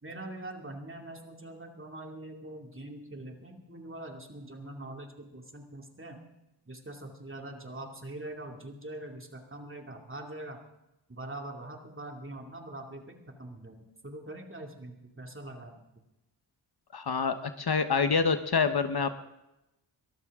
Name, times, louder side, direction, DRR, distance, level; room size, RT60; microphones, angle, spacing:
voice 1, 0.0-6.2 6.7-10.6 11.1-15.8, right 1 dB, 25° right, 3 dB, 2.6 m, -43 dB
voice 2, 16.9-19.1, left 5 dB, 55° left, 10 dB, 1.1 m, -27 dB
23.0 x 13.5 x 3.7 m, 0.91 s
wide cardioid pair, 80°, 45 cm